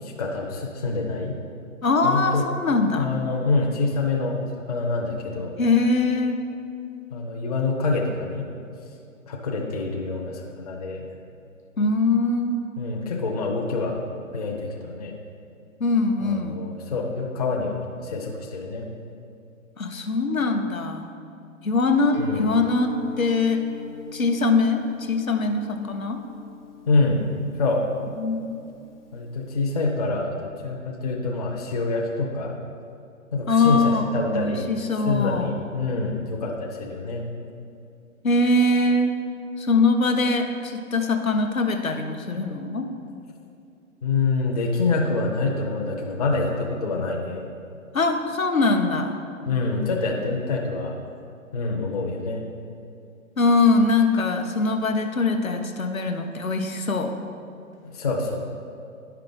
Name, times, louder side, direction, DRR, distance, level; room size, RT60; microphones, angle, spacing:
voice 1, 0.0-1.4 2.0-2.5 3.0-5.5 7.1-8.5 9.3-11.1 12.8-14.0 14.3-15.1 16.2-18.9 22.2-22.5 26.9-27.2 27.5-27.8 29.1-32.6 33.3-37.3 44.0-47.5 49.4-51.0 51.5-52.5 57.9-58.4, left 3 dB, 30° left, 0 dB, 0.6 m, -26 dB
voice 2, 1.8-3.1 5.6-6.4 11.8-12.6 15.8-16.6 19.8-21.1 21.6-23.7 24.1-26.2 28.2-28.5 33.5-35.5 38.2-39.2 39.6-42.9 47.9-49.2 53.4-57.2, left 3 dB, 75° left, 5 dB, 0.9 m, -22 dB
Guitar, 22.1-29.9, left 6 dB, 45° left, 1.0 m, -40 dB
10.0 x 5.7 x 3.9 m, 2.5 s
figure-of-eight pair, 135°, 42 cm